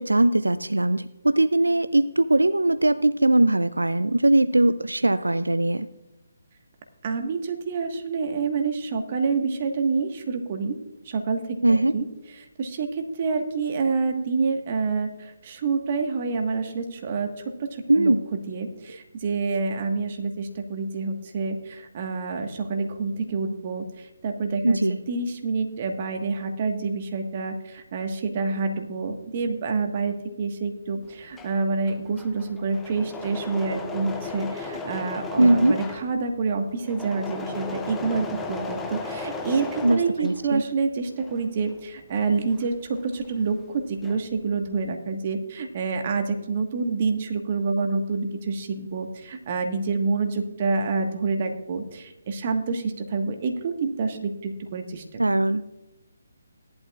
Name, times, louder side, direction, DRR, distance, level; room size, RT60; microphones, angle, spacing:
voice 1, 0.0-5.9 11.6-11.9 17.9-18.2 24.6-25.0 35.4-35.7 39.8-40.6 55.2-55.6, right 1 dB, 85° right, 14 dB, 0.4 m, -20 dB
voice 2, 7.0-10.8 11.0-17.3 17.6-55.0, right 4 dB, 40° right, 5 dB, 1.4 m, -27 dB
Engine / Mechanisms, 31.1-40.7 41.1-43.4 43.7-44.4, left 3 dB, 10° left, 0.7 m, -36 dB
16.5 x 11.5 x 2.4 m, 0.97 s
figure-of-eight pair, 145°, 0 cm